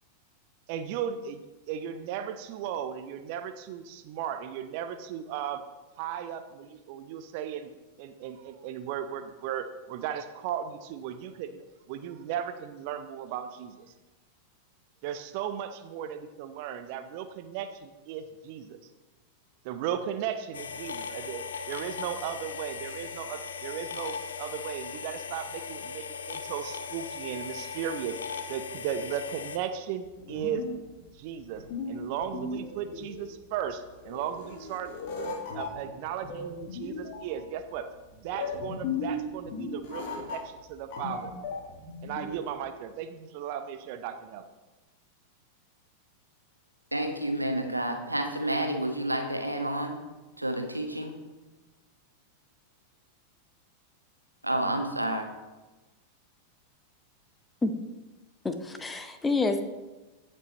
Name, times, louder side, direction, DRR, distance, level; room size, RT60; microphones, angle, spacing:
voice 1, 0.7-5.6 6.0-7.7 8.0-13.9 15.0-18.8 19.6-28.2 28.5-30.6 31.0-35.3 35.5-41.3 42.0-44.5, right 9 dB, 45° right, 10 dB, 0.6 m, -36 dB
sound 1, 20.5-29.6, left 6 dB, 65° left, 0.7 m, -38 dB
sound 2, 30.0-42.6, left 3 dB, 45° left, 1.8 m, -37 dB
voice 2, 46.9-50.0 50.4-51.1 54.4-55.3, right 1 dB, 85° right, 4 dB, 1.2 m, -29 dB
voice 3, 58.4-59.6, left 3 dB, 10° left, 8 dB, 0.8 m, -28 dB
15.5 x 5.5 x 4.1 m, 1.1 s
figure-of-eight pair, 90°, 0 cm